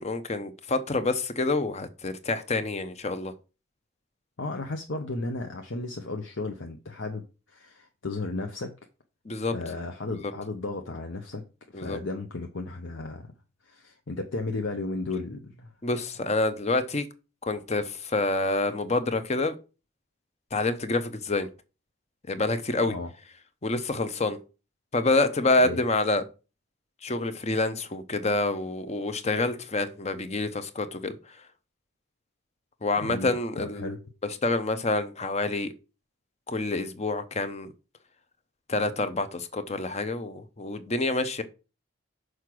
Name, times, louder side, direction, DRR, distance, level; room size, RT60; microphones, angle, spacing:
voice 1, 0.0-3.3 9.2-9.5 10.1-10.3 11.7-12.0 15.8-17.1 17.4-19.5 20.5-21.5 22.3-23.0 23.6-24.4 24.9-26.2 27.0-31.5 32.8-34.0 34.2-35.7 36.5-37.7 38.7-41.4, left 2 dB, 30° left, 0.7 m, -27 dB
voice 2, 4.4-8.7 9.5-11.4 11.7-13.3 13.6-15.7 22.9-23.1 25.6-25.8 33.0-33.3 33.6-34.0, left 3 dB, 60° left, 0.8 m, -34 dB
6.5 x 4.8 x 6.1 m
head